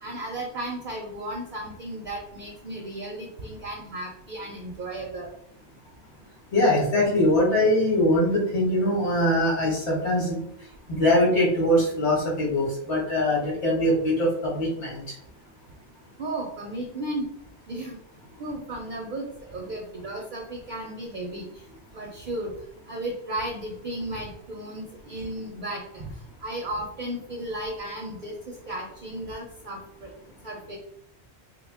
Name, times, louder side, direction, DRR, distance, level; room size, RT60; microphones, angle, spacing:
voice 1, 0.0-5.3 16.2-17.3 17.7-18.0 18.4-21.6 21.9-22.5 22.9-26.1 26.4-30.1 30.4-30.8, right 1 dB, 55° right, 0 dB, 0.6 m, -34 dB
voice 2, 6.5-10.5 10.9-15.0, left 1 dB, 90° left, -3 dB, 1.6 m, -22 dB
3.4 x 2.3 x 3.4 m, 0.72 s
omnidirectional pair, 1.1 m